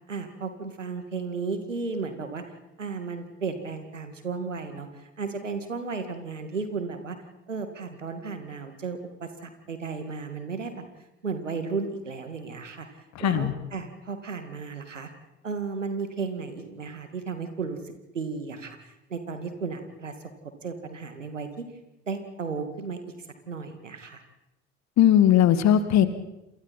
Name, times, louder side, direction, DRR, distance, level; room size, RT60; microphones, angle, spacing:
voice 1, 0.1-2.4 2.8-7.2 7.5-10.8 11.2-12.9 13.2-15.1 15.4-17.8 18.1-20.1 20.6-21.7 22.1-23.0 23.5-24.2, right 4 dB, 85° right, 8 dB, 2.2 m, -34 dB
voice 2, 13.2-13.5 25.0-26.1, left 11 dB, 50° left, 12 dB, 1.9 m, -18 dB
28.5 x 27.0 x 4.3 m, 0.93 s
figure-of-eight pair, 60°, 36 cm